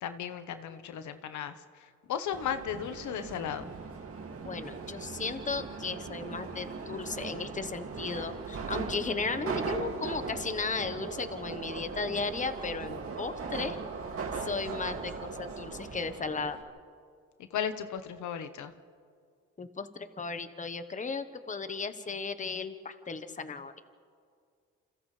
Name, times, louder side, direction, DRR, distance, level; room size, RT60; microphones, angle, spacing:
voice 1, 0.0-3.7 17.4-18.7, left 8 dB, 75° left, 9 dB, 1.2 m, -36 dB
Subway metro underground, 2.3-16.6, right 5 dB, 50° right, 2.4 m, -39 dB
voice 2, 4.4-13.8 14.4-16.6 19.6-19.9 20.2-23.8, left 4 dB, 25° left, 10 dB, 1.2 m, -35 dB
29.0 x 27.5 x 3.4 m, 2.1 s
cardioid pair, 90°, 30 cm